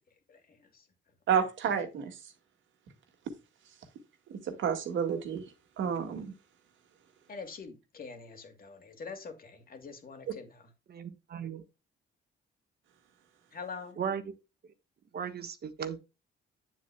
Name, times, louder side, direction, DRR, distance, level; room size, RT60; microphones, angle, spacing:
voice 1, 0.3-0.9 7.3-10.7 13.5-14.0, left 5 dB, 45° left, 2.4 m, -45 dB
voice 2, 1.3-2.2 4.3-5.4 5.8-6.3, right 7 dB, 75° right, 2.0 m, -30 dB
voice 3, 10.9-11.6 14.0-14.3 15.1-16.0, right 7 dB, 55° right, 1.3 m, -36 dB
9.0 x 7.6 x 2.2 m
cardioid pair, 90°, 20 cm